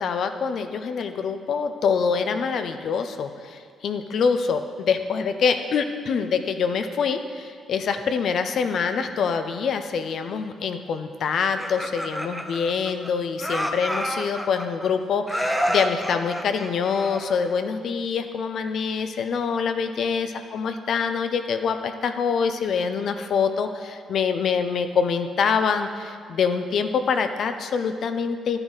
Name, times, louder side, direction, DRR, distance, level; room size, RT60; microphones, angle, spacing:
voice 1, 0.0-28.6, left 6 dB, 65° left, 7 dB, 0.6 m, -25 dB
Laughter, 11.4-13.1 13.4-14.9 15.3-17.5, equal, ahead, 0.8 m, -29 dB
10.5 x 9.8 x 4.0 m, 2.1 s
cardioid pair, 90°, 0 cm